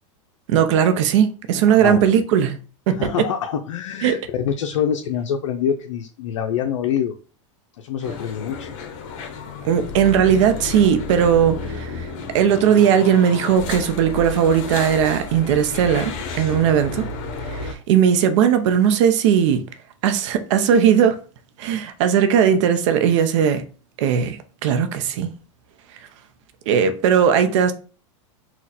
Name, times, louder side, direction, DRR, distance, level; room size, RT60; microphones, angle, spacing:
voice 1, 0.5-2.6 2.9-3.1 4.0-4.2 9.6-12.1 12.3-17.1 17.5-19.6 20.0-21.2 21.6-23.6 24.0-25.3 26.7-27.7, right 8 dB, 65° right, 0.7 m, -18 dB
voice 2, 1.7-2.1 2.9-7.2 7.8-8.7, left 8 dB, 80° left, 0.5 m, -25 dB
sound 1, 8.0-17.7, left 4 dB, 55° left, 0.9 m, -32 dB
4.1 x 2.3 x 4.1 m
supercardioid pair, 120°, 16 cm